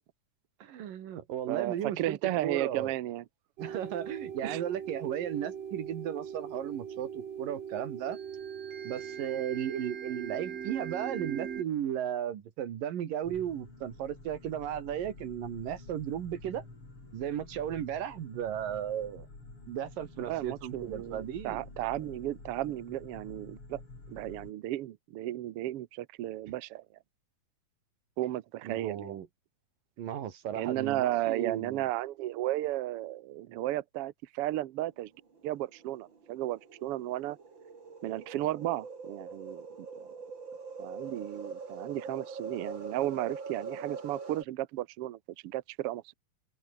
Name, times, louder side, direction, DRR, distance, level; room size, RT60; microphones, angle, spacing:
voice 1, 0.6-2.9 3.6-8.2 8.8-16.6 17.1-19.3 19.7-21.6 28.6-29.3 30.0-31.8, right 10 dB, 75° right, 3.7 m, -35 dB
voice 2, 1.5-3.2 4.4-4.6 20.3-23.8 24.1-26.8 28.2-29.2 30.5-35.1 35.4-37.4 38.0-40.1 40.8-45.2 45.4-46.1, right 15 dB, 90° right, 1.2 m, -34 dB
sound 1, 3.6-11.6, right 8 dB, 50° right, 3.0 m, -40 dB
sound 2, 13.2-24.5, left 3 dB, 40° left, 8.0 m, -49 dB
sound 3, 35.4-44.4, right 4 dB, 35° right, 3.6 m, -43 dB
omnidirectional pair, 4.0 m